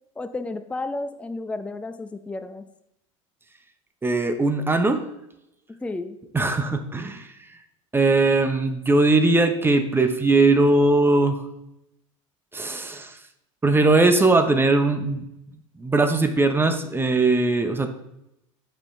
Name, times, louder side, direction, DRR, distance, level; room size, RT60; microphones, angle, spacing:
voice 1, 0.2-2.6 5.8-6.2, left 2 dB, 5° left, 9 dB, 0.5 m, -32 dB
voice 2, 4.0-5.0 6.3-7.3 7.9-11.4 12.5-13.1 13.6-15.2 15.8-17.9, right 2 dB, 15° right, 7 dB, 0.8 m, -20 dB
8.2 x 5.7 x 3.3 m, 0.83 s
hypercardioid pair, 80°, 17 cm